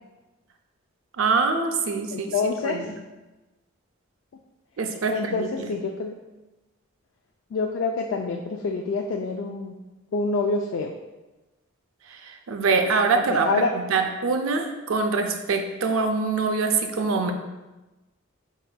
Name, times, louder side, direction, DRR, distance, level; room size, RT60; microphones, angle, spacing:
voice 1, 1.2-2.3 2.6-2.8 4.8-5.7 12.1-17.3, right 4 dB, 75° right, 5 dB, 0.5 m, -24 dB
voice 2, 2.1-2.9 5.1-6.2 7.5-9.8 10.1-10.9 13.3-13.7, left 4 dB, 60° left, 2 dB, 0.3 m, -26 dB
5.1 x 4.1 x 2.2 m, 1.1 s
head